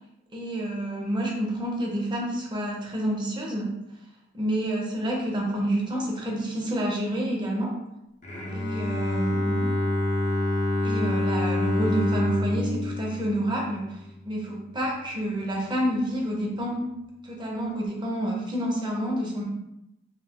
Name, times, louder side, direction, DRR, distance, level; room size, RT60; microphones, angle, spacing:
voice 1, 0.3-3.8 4.3-7.7 8.5-9.6 10.8-14.0 14.3-16.9 17.2-19.4, right 1 dB, 25° right, -1 dB, 0.6 m, -28 dB
Bowed string instrument, 8.2-14.2, left 1 dB, 40° left, 0.6 m, -27 dB
2.4 x 2.4 x 3.4 m, 0.88 s
head